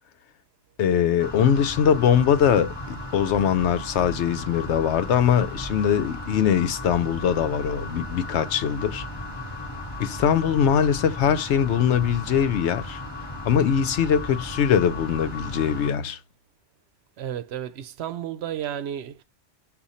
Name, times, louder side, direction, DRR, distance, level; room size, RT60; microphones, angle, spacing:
voice 1, 0.8-9.0 10.0-13.0 13.4-16.2, left 8 dB, 85° left, 0.9 m, -22 dB
sound 1, 1.2-15.9, left 1 dB, 25° left, 0.9 m, -35 dB
voice 2, 17.2-19.2, right 10 dB, 70° right, 0.8 m, -32 dB
5.0 x 2.5 x 4.1 m
omnidirectional pair, 1.1 m